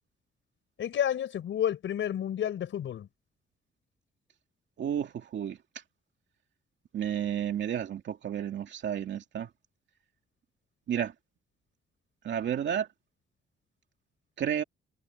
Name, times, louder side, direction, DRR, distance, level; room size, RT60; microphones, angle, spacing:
voice 1, 0.8-3.1, left 10 dB, 65° left, 5.1 m, -30 dB
voice 2, 4.8-5.6 6.9-9.5 10.9-11.1 12.2-12.9 14.4-14.6, right 9 dB, 60° right, 2.4 m, -31 dB
cardioid pair, 150°, 21 cm